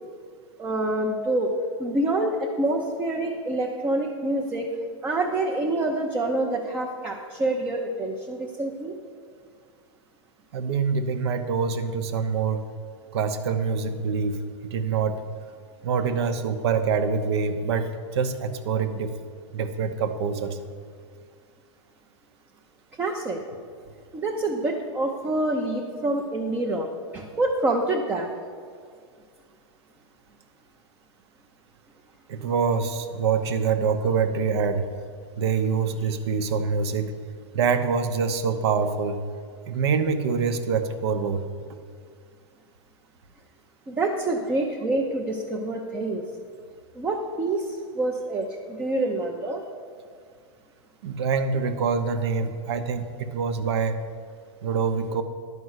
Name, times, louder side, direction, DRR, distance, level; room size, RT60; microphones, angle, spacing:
voice 1, 0.6-1.5 1.8-4.7 5.0-8.9 23.0-23.4 24.1-26.9 27.1-28.3 43.9-46.2 47.0-49.6, right 2 dB, 10° right, 0 dB, 0.6 m, -26 dB
voice 2, 10.5-12.6 13.1-15.2 15.8-19.1 19.5-20.6 32.3-34.9 35.4-37.1 37.5-39.2 39.7-41.4 51.0-54.0 54.6-55.2, right 5 dB, 65° right, 9 dB, 0.9 m, -25 dB
11.0 x 5.3 x 8.0 m, 2.1 s
supercardioid pair, 165°, 15 cm